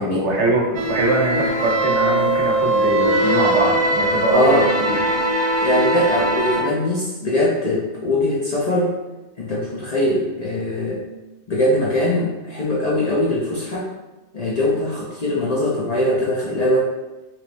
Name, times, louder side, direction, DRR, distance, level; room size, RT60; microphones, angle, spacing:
voice 1, 0.0-5.1, right 2 dB, 80° right, -1 dB, 1.0 m, -22 dB
sound 1, 0.7-6.6, right 1 dB, 55° right, 0.5 m, -20 dB
voice 2, 4.3-4.7 5.6-8.9 9.4-11.0 11.5-13.9 14.3-16.9, left 1 dB, 50° left, -5 dB, 0.5 m, -21 dB
3.1 x 3.0 x 2.5 m, 1.1 s
omnidirectional pair, 1.2 m